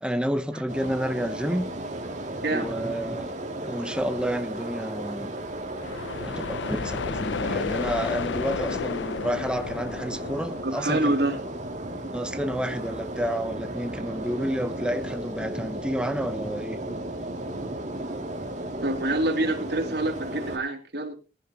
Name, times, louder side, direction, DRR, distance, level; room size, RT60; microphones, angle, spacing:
voice 1, 0.0-1.7 2.5-3.3 3.6-5.3 6.3-11.2 12.1-16.8, equal, 5° right, 0.8 m, -30 dB
sound 1, 0.7-20.6, right 1 dB, 45° right, 2.5 m, -35 dB
voice 2, 2.4-2.7 10.6-11.4 18.8-21.1, right 1 dB, 65° right, 2.8 m, -26 dB
sound 2, 5.8-11.5, left 5 dB, 85° left, 0.5 m, -32 dB
19.5 x 10.0 x 2.9 m
head